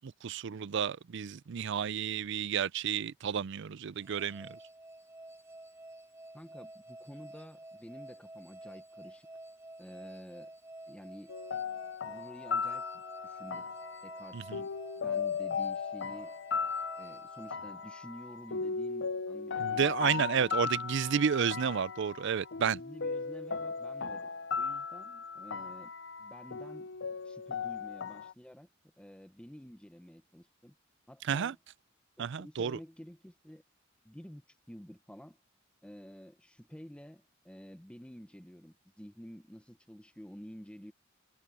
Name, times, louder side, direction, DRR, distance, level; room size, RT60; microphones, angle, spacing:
voice 1, 0.0-4.6 14.3-14.6 19.6-22.8 31.2-31.5 32.2-32.8, right 7 dB, 65° right, 0.4 m, -31 dB
sound 1, 4.0-18.4, right 1 dB, 15° right, 0.5 m, -50 dB
voice 2, 6.3-9.3 9.8-10.5 10.9-11.3 11.8-13.7 14.0-14.7 15.0-16.3 17.0-20.8 22.7-24.3 24.6-25.9 26.2-26.9 27.2-28.7 29.0-30.7 31.1-31.6 32.2-33.6 34.0-35.4 35.8-40.9, equal, 5° left, 1.0 m, -50 dB
sound 2, 11.3-28.3, left 5 dB, 65° left, 0.6 m, -37 dB
head